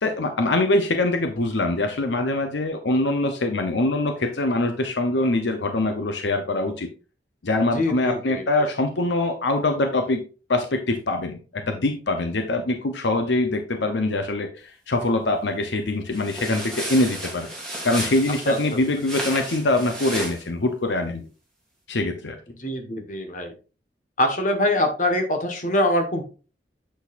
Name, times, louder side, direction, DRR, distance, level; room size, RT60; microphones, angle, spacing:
voice 1, 0.0-6.9 7.4-10.2 10.5-17.5 17.8-21.3 21.9-22.4, left 2 dB, 75° left, 6 dB, 0.8 m, -23 dB
voice 2, 7.7-8.7 18.5-18.6 22.6-23.5 24.2-26.2, left 1 dB, 45° left, 5 dB, 1.4 m, -24 dB
sound 1, 16.1-20.4, right 1 dB, 5° left, 2.4 m, -33 dB
8.2 x 6.3 x 2.5 m, 0.35 s
head